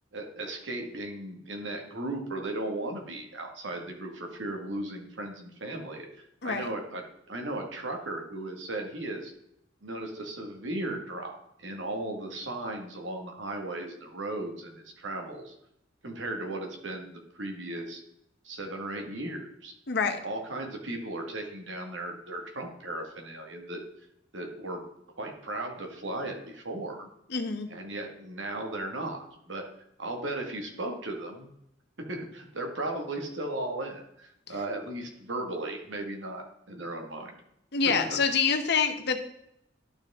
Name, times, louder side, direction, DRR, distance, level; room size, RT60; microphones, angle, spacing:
voice 1, 0.1-6.1 6.4-7.0 7.3-9.3 9.8-15.5 16.0-18.0 18.4-19.7 20.2-23.8 24.3-24.8 25.2-27.1 27.7-29.6 30.0-31.5 32.1-37.4, right 2 dB, 90° right, 3 dB, 1.7 m, -36 dB
voice 2, 19.9-20.2 27.3-27.7 37.7-39.2, left 5 dB, 60° left, 7 dB, 0.9 m, -26 dB
11.5 x 4.7 x 3.6 m, 0.77 s
head